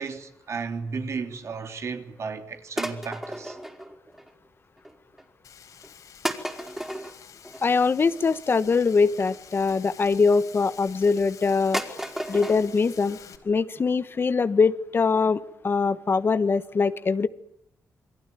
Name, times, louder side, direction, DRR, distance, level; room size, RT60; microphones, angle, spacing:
voice 1, 0.0-3.6, right 5 dB, 55° right, 3.1 m, -34 dB
sound 1, 2.8-4.5 4.8-5.2 5.8-5.9 6.2-9.8 10.5-11.1 11.4-11.5 11.7-12.6 12.9-13.0 13.3-13.4 13.8-13.9 14.1-14.2 14.6-14.7 15.0-15.1 15.5-15.6 15.8-15.9, right 1 dB, 5° right, 4.3 m, -34 dB
Frying (food), 5.4-13.4, left 8 dB, 80° left, 4.6 m, -48 dB
voice 2, 7.6-11.8 12.3-13.2 13.4-17.3, left 4 dB, 40° left, 1.2 m, -22 dB
28.5 x 22.5 x 9.1 m
cardioid pair, 95°, 6 cm